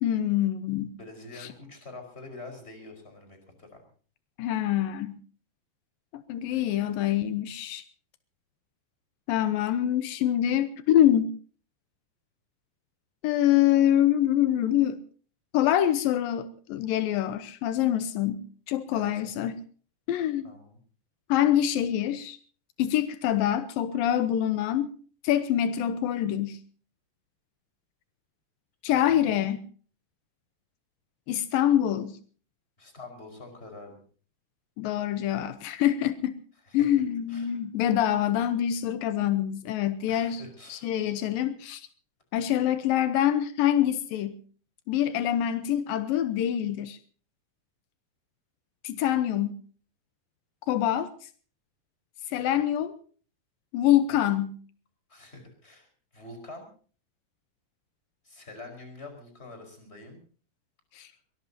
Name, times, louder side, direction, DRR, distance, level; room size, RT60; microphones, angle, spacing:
voice 1, 0.0-1.0 1.4-1.5 4.4-5.2 6.1-7.9 9.3-11.4 13.2-15.0 15.5-19.6 20.1-20.5 21.3-22.4 22.8-24.9 25.2-26.6 28.8-29.6 31.3-32.2 34.8-36.3 36.7-40.4 40.7-41.8 42.3-44.4 44.9-47.0 48.8-49.5 50.7-51.1 52.3-53.0 53.7-54.6 61.0-61.1, left 11 dB, 85° left, 2.7 m, -25 dB
voice 2, 1.0-3.8 6.5-6.8 18.9-19.4 20.4-20.8 28.9-29.3 32.8-34.0 36.7-36.9 37.3-37.6 40.1-40.9 55.1-56.7 58.2-60.2, left 2 dB, 15° left, 5.3 m, -46 dB
23.0 x 20.5 x 2.8 m
omnidirectional pair, 4.0 m